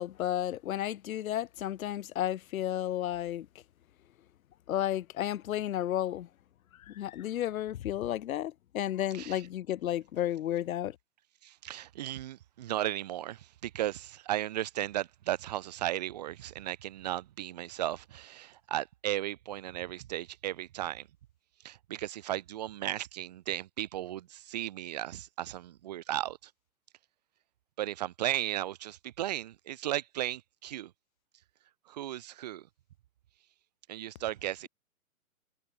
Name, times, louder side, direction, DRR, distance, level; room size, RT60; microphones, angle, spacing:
voice 1, 0.0-3.5 4.7-6.3 6.9-11.0, left 12 dB, 75° left, 0.5 m, -32 dB
voice 2, 11.4-21.1 21.6-26.5 27.8-30.9 31.9-32.7 33.9-34.7, right 13 dB, 30° right, 0.5 m, -35 dB
figure-of-eight pair, 125°, 42 cm